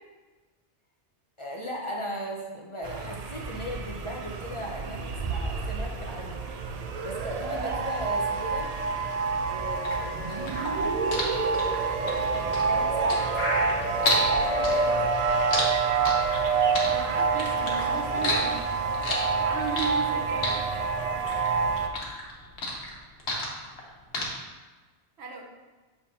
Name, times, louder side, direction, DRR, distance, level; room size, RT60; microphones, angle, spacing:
voice 1, 1.4-6.4 7.0-8.7 9.5-10.5 11.9-13.3 14.0-15.1 15.5-15.6 17.6-18.5, equal, 35° left, -1 dB, 0.6 m, -37 dB
sound 1, 2.8-21.9, right 4 dB, 55° right, 0.4 m, -27 dB
sound 2, 9.8-14.3 14.6-16.4 16.8-17.9 18.2-20.1 20.4-21.5 21.8-23.8 24.1-24.2, left 2 dB, 80° left, 1.3 m, -30 dB
voice 2, 16.9-18.8 19.4-20.6 25.2-25.4, right 5 dB, 80° right, 0 dB, 1.2 m, -35 dB
6.9 x 5.4 x 2.7 m, 1.3 s
omnidirectional pair, 1.1 m